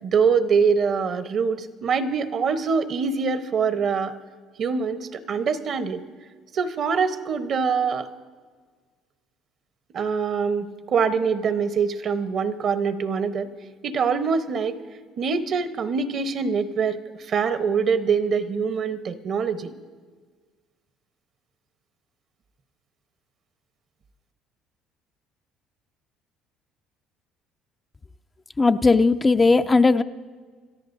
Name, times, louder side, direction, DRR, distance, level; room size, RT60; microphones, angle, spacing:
voice 1, 0.0-4.1 4.6-6.0 6.5-8.1 9.9-13.5 13.8-14.8 15.2-17.0 17.3-19.7, right 5 dB, 50° right, 10 dB, 1.0 m, -24 dB
voice 2, 28.6-30.0, left 3 dB, 20° left, 10 dB, 0.4 m, -17 dB
28.0 x 13.5 x 2.7 m, 1.5 s
supercardioid pair, 95°, 0 cm